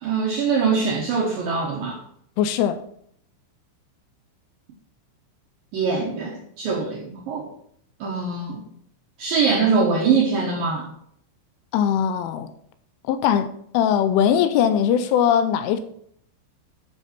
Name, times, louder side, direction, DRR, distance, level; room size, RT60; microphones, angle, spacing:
voice 1, 0.0-2.0 5.7-7.5 8.0-8.6 9.2-10.9, right 5 dB, 85° right, 2.0 m, -23 dB
voice 2, 2.4-2.8 11.7-12.5 13.1-13.5 13.7-15.8, left 9 dB, 80° left, 3.0 m, -20 dB
11.0 x 6.0 x 4.4 m
omnidirectional pair, 5.8 m